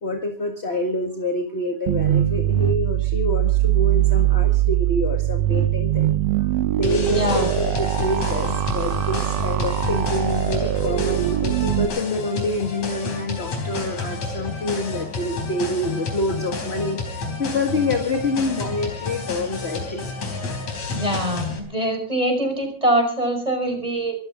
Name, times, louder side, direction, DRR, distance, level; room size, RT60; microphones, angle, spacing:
voice 1, 0.0-20.4, left 2 dB, 30° left, 4 dB, 1.4 m, -27 dB
sound 1, 1.9-11.9, right 14 dB, 65° right, 1.8 m, -21 dB
sound 2, 6.8-21.6, left 3 dB, 65° left, 5.0 m, -30 dB
voice 2, 7.1-7.5 20.9-24.2, right 1 dB, 10° right, 4 dB, 5.4 m, -23 dB
24.5 x 15.0 x 3.7 m, 0.39 s
omnidirectional pair, 3.4 m